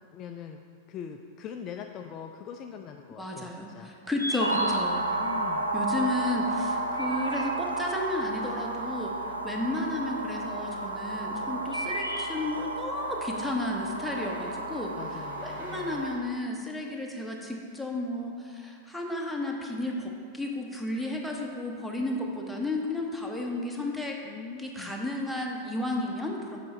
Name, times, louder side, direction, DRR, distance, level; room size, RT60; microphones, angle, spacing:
voice 1, 0.1-0.6 0.9-3.9 5.2-5.7 15.0-16.0 24.2-24.9, left 7 dB, 35° left, 4 dB, 0.3 m, -42 dB
voice 2, 3.2-5.2 5.7-9.2 9.4-14.9 15.4-24.2 24.6-26.6, left 1 dB, ahead, -1 dB, 0.9 m, -33 dB
Wood thrush, 4.0-5.3 6.6-8.0 9.1-9.9 10.9-12.9, equal, 90° left, 0.6 m, -36 dB
sound 1, 4.4-16.2, right 2 dB, 80° right, 0.5 m, -32 dB
sound 2, 14.0-16.7, equal, 55° right, 1.3 m, -50 dB
7.5 x 5.0 x 4.3 m, 2.3 s
figure-of-eight pair, 90°, 0 cm